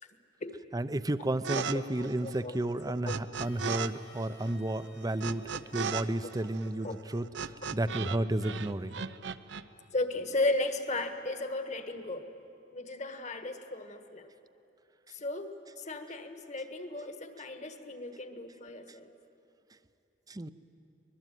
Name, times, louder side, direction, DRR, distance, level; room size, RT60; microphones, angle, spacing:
voice 1, 0.7-5.4 5.7-9.0 20.3-20.5, right 1 dB, 20° right, 13 dB, 0.6 m, -32 dB
sound 1, 1.4-1.8 2.0-3.9 4.2-8.2 8.4-9.6, right 6 dB, 65° right, 0.7 m, -36 dB
voice 2, 1.5-2.6 3.0-3.1 6.2-6.3 6.8-7.0 9.0-9.3 9.9-12.3 12.7-14.3 15.1-19.1, left 2 dB, 40° left, 8 dB, 1.5 m, -35 dB
Harmonica, 3.3-8.1, left 4 dB, 85° left, 6.1 m, -61 dB
24.5 x 20.5 x 9.2 m, 2.7 s
head